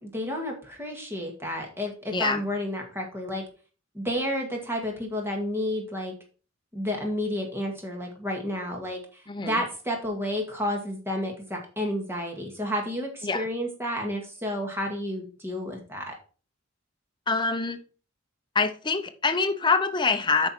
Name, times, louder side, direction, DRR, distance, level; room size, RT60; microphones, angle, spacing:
voice 1, 0.0-3.4 3.9-6.1 6.7-16.1, equal, 10° right, 1 dB, 2.1 m, -31 dB
voice 2, 2.1-2.4 9.3-9.6 13.2-13.5 17.3-17.8 18.5-20.5, left 4 dB, 20° left, 9 dB, 0.7 m, -25 dB
9.0 x 5.4 x 4.5 m, 0.37 s
head